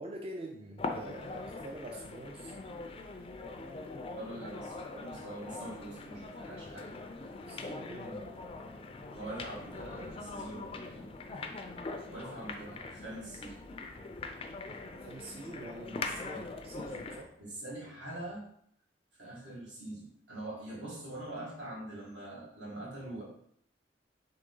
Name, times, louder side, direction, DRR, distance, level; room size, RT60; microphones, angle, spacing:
voice 1, 0.0-2.5 7.5-8.2 15.0-17.3, right 1 dB, 30° right, 1 dB, 0.4 m, -45 dB
sound 1, 0.8-17.3, left 3 dB, 30° left, 0.4 m, -42 dB
voice 2, 4.1-6.9 8.0-8.2 9.1-11.1 12.1-13.7 16.3-16.4 17.4-18.4 19.2-23.2, right 1 dB, 80° right, -5 dB, 1.7 m, -44 dB
3.9 x 3.2 x 3.7 m, 0.68 s
head